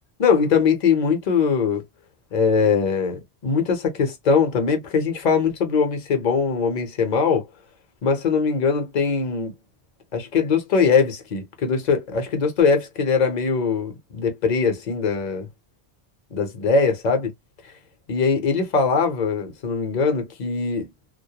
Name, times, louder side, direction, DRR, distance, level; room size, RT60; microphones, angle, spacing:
voice 1, 0.2-1.8 2.3-7.4 8.0-9.5 10.1-15.5 16.3-17.3 18.1-20.9, left 5 dB, 50° left, 0.7 m, -21 dB
2.2 x 2.1 x 2.8 m
omnidirectional pair, 1.1 m